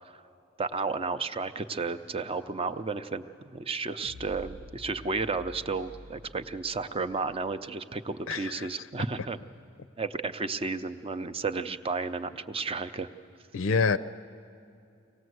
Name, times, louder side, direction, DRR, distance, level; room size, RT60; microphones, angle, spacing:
voice 1, 0.6-3.2 3.5-9.4 10.0-13.1, right 4 dB, 30° right, 10 dB, 0.6 m, -32 dB
sound 1, 4.0-7.4, left 1 dB, 85° right, 0.8 m, -49 dB
voice 2, 8.3-8.9 13.5-14.0, left 5 dB, 70° left, 11 dB, 0.5 m, -27 dB
24.0 x 18.0 x 7.9 m, 2.6 s
head